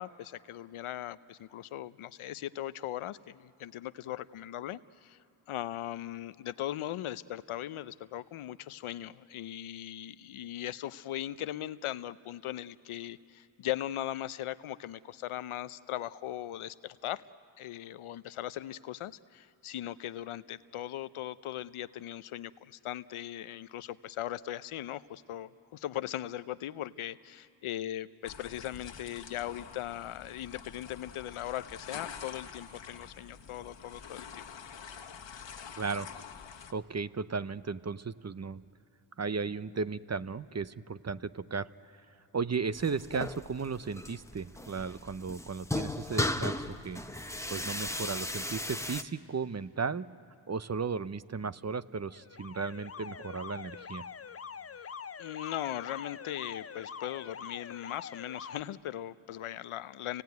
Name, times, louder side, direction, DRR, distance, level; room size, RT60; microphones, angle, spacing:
voice 1, 0.0-5.2 5.5-17.2 17.6-34.5 55.2-60.2, left 12 dB, 85° left, 16 dB, 0.6 m, -39 dB
sound 1, 28.2-36.7, left 6 dB, 65° left, 1.4 m, -47 dB
voice 2, 35.8-36.1 36.7-38.7 39.2-41.7 42.3-47.0 47.5-50.1 50.5-54.1, right 5 dB, 35° right, 14 dB, 0.7 m, -35 dB
sound 2, 42.8-49.0, left 1 dB, 5° left, 1.1 m, -36 dB
Alarm, 52.1-58.6, left 7 dB, 30° left, 0.6 m, -44 dB
29.5 x 18.5 x 9.3 m, 2.9 s
cardioid pair, 40°, 49 cm